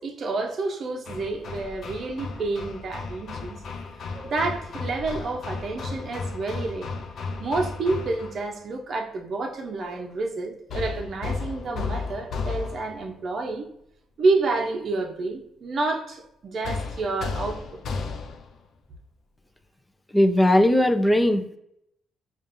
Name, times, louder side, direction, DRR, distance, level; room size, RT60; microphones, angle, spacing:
voice 1, 0.0-3.6 4.1-6.9 7.4-13.7 14.2-17.8, right 3 dB, 55° right, 0.6 m, -29 dB
Hammer, 1.1-8.5 10.7-13.1 16.6-18.6, left 4 dB, 60° left, 0.5 m, -34 dB
voice 2, 20.1-21.6, left 1 dB, 10° left, 0.5 m, -19 dB
5.1 x 2.5 x 2.6 m
cardioid pair, 90°, 0 cm